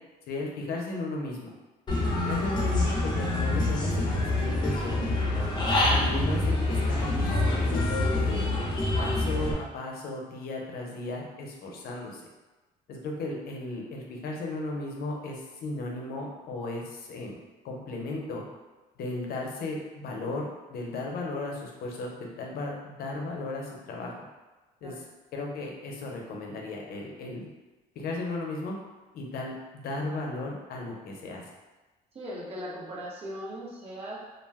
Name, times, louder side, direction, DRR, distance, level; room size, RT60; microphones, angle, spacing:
voice 1, 0.3-1.5 2.2-5.3 5.9-8.5 9.0-12.2 12.9-17.4 17.6-18.4 19.0-24.1 24.8-25.0 25.3-27.5 28.0-28.8 29.1-31.4, left 2 dB, 65° left, 0 dB, 0.7 m, -35 dB
Human voice / Bird, 1.9-9.5, left 2 dB, 25° left, 0.7 m, -26 dB
voice 2, 32.1-34.2, equal, 35° right, -6 dB, 1.0 m, -38 dB
2.4 x 2.2 x 3.4 m, 1.2 s
cardioid pair, 110°, 17 cm